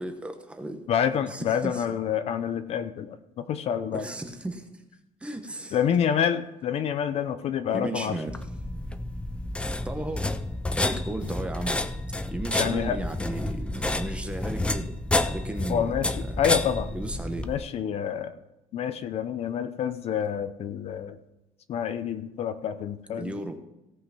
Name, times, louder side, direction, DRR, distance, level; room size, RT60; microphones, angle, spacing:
voice 1, 0.0-0.8 1.3-1.9 3.9-4.8 5.2-5.8 7.7-8.3 9.8-10.4 10.8-11.8 12.3-14.9 15.2-16.0 16.3-16.4 16.9-17.5 23.2-23.6, right 2 dB, 10° right, 6 dB, 1.0 m, -35 dB
voice 2, 0.9-4.1 5.7-8.2 12.6-13.0 15.7-16.1 16.4-16.9 17.4-18.3 18.7-21.2 21.7-23.3, left 8 dB, 50° left, 10 dB, 0.7 m, -28 dB
sound 1, 8.3-17.6, left 2 dB, 10° left, 0.4 m, -30 dB
17.0 x 5.7 x 5.7 m, 0.94 s
cardioid pair, 175°, 14 cm